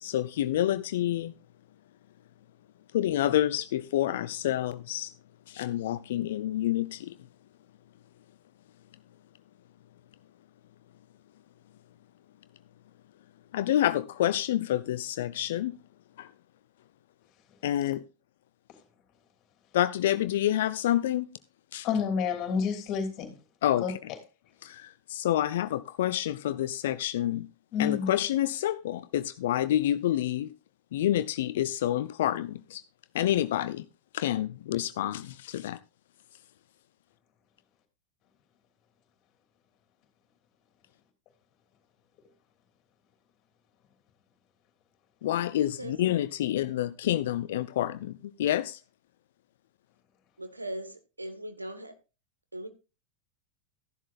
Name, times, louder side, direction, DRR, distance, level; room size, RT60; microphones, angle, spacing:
voice 1, 0.0-1.3 2.9-5.1 5.5-7.1 13.5-15.8 16.2-16.3 17.6-18.0 19.7-21.3 21.7-21.9 23.6-23.9 24.6-27.5 27.8-30.5 30.9-32.8 33.1-33.8 34.1-35.8 45.2-48.1 48.4-48.8, left 12 dB, 55° left, 0.4 m, -28 dB
voice 2, 21.8-23.3 23.8-23.9 27.7-28.1, left 6 dB, 35° left, 2.9 m, -29 dB
voice 3, 50.4-51.9 52.5-52.7, right 1 dB, 85° right, 1.4 m, -39 dB
14.5 x 11.0 x 2.4 m
figure-of-eight pair, 90°, 0 cm